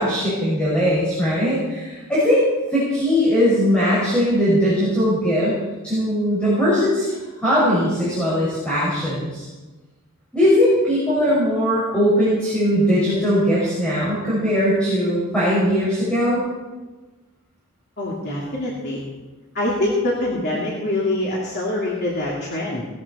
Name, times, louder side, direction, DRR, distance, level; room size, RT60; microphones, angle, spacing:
voice 1, 0.0-2.4 2.7-7.1 7.4-9.4 10.3-16.4, equal, 5° left, -9 dB, 5.9 m, -19 dB
voice 2, 18.0-19.0 19.5-22.8, left 1 dB, 50° left, -4 dB, 2.8 m, -24 dB
19.5 x 14.0 x 4.4 m, 1.2 s
head